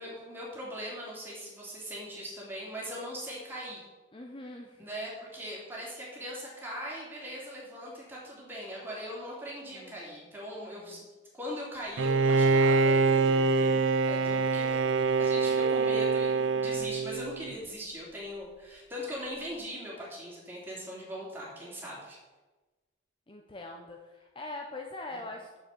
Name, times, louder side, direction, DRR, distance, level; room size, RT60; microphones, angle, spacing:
voice 1, 0.0-3.8 4.8-11.0 11.4-22.2 25.1-25.2, equal, 10° right, -5 dB, 3.0 m, -40 dB
voice 2, 4.1-4.9 9.7-10.1 10.9-11.1 23.3-25.6, left 2 dB, 25° left, 2 dB, 0.7 m, -43 dB
Bowed string instrument, 12.0-17.5, right 4 dB, 85° right, 0.5 m, -25 dB
7.0 x 6.4 x 7.8 m, 1.2 s
head